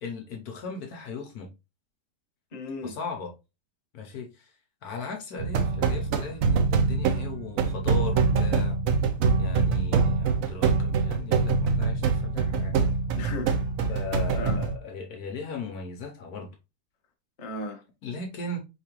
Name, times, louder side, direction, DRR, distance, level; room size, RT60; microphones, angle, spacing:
voice 1, 0.0-1.5 2.8-3.3 3.9-4.5 4.8-8.8 9.4-12.8 13.9-16.5 18.0-18.6, left 3 dB, 65° left, 1.2 m, -37 dB
voice 2, 2.5-3.0 13.2-14.0 14.4-14.6 17.4-17.8, left 2 dB, 30° left, 0.9 m, -36 dB
sound 1, 5.4-14.8, right 4 dB, 65° right, 0.9 m, -24 dB
4.8 x 3.6 x 2.9 m
omnidirectional pair, 1.8 m